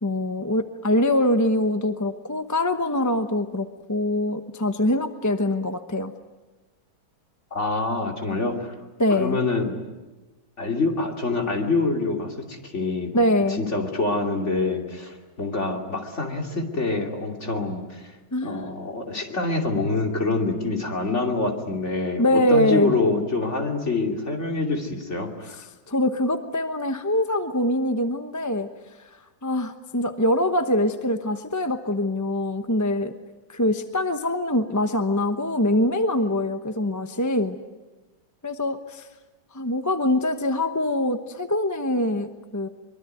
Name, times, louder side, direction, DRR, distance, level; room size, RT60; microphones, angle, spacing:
voice 1, 0.0-6.1 9.0-9.4 13.1-13.6 18.3-18.7 22.2-22.9 25.9-28.7 29.4-33.1 33.5-37.6 38.4-39.1 39.5-42.7, left 1 dB, 15° left, 8 dB, 0.7 m, -23 dB
voice 2, 7.5-8.7 9.1-9.7 10.6-13.2 13.5-18.2 18.4-25.6, left 3 dB, 40° left, 2 dB, 3.1 m, -26 dB
23.5 x 23.5 x 9.3 m, 1.1 s
omnidirectional pair, 1.9 m